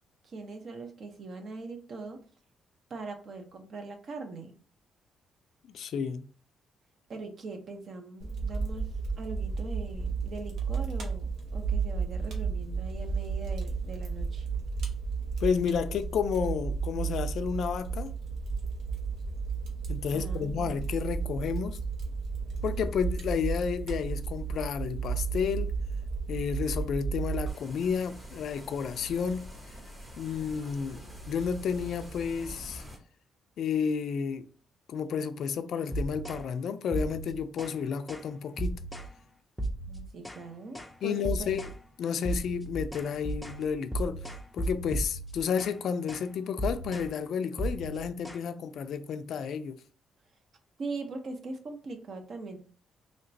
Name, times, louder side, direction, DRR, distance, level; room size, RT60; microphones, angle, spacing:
voice 1, 0.2-2.2 2.9-4.6 7.1-8.9 9.2-14.5 20.1-20.9 39.9-41.5 50.8-52.6, right 3 dB, 50° right, 0.7 m, -41 dB
voice 2, 5.7-6.3 15.4-18.1 19.9-21.8 22.6-25.7 26.3-29.5 30.2-31.0 31.3-32.8 33.6-34.5 34.9-38.8 41.0-41.7 42.0-44.2 44.5-49.8, left 7 dB, 65° left, 0.3 m, -31 dB
Fire, 8.2-27.5, right 5 dB, 75° right, 0.9 m, -33 dB
sound 1, 27.5-33.0, right 1 dB, 25° right, 1.0 m, -45 dB
sound 2, 35.9-36.5 36.9-37.8 38.1-38.3 38.6-39.1 39.6-40.5 40.7-41.0 41.2-41.8 42.2-45.8 46.1-46.3 46.6-47.1 47.6-48.4, right 2 dB, 5° left, 0.5 m, -35 dB
3.2 x 2.9 x 2.6 m
cardioid pair, 110°, 0 cm